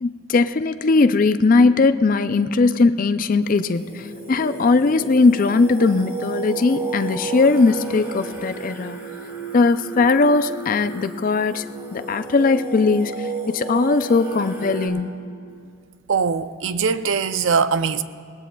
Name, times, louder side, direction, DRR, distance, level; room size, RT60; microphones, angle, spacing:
voice 1, 0.0-9.0 9.5-11.7 11.9-15.1, left 3 dB, 40° left, 0.4 m, -19 dB
Singing, 3.4-14.9, right 4 dB, 10° right, 3.0 m, -33 dB
voice 2, 16.1-18.0, right 5 dB, 60° right, 0.5 m, -21 dB
20.5 x 18.0 x 2.3 m
head